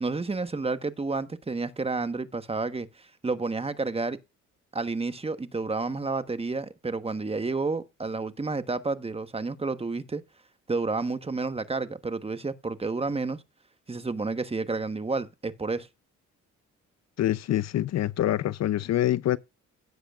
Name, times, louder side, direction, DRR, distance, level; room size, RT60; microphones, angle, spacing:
voice 1, 0.0-4.2 4.7-10.2 10.7-13.4 13.9-15.9, right 3 dB, 20° right, 1.2 m, -30 dB
voice 2, 17.2-19.4, left 13 dB, 60° left, 0.6 m, -25 dB
17.0 x 7.6 x 2.4 m
cardioid pair, 90°, 30 cm